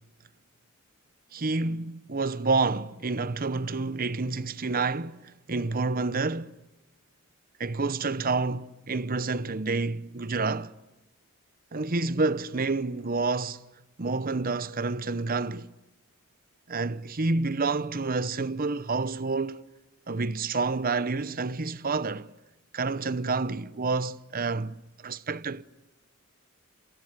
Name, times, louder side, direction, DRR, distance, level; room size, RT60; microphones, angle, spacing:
voice 1, 1.3-6.5 7.6-10.7 11.7-13.7 14.0-15.7 16.7-19.6 20.1-22.3 22.7-24.8 25.0-25.6, right 3 dB, 40° right, 0.9 m, -29 dB
28.0 x 23.5 x 8.1 m
head